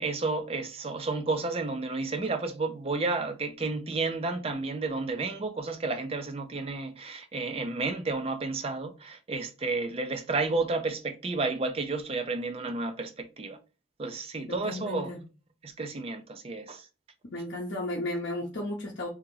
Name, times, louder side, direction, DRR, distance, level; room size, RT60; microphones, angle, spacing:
voice 1, 0.0-13.6 14.0-15.1 15.6-16.9, right 3 dB, 30° right, 0.4 m, -31 dB
voice 2, 14.5-15.2 17.2-19.1, left 1 dB, 55° left, 0.7 m, -34 dB
2.8 x 2.8 x 3.8 m
head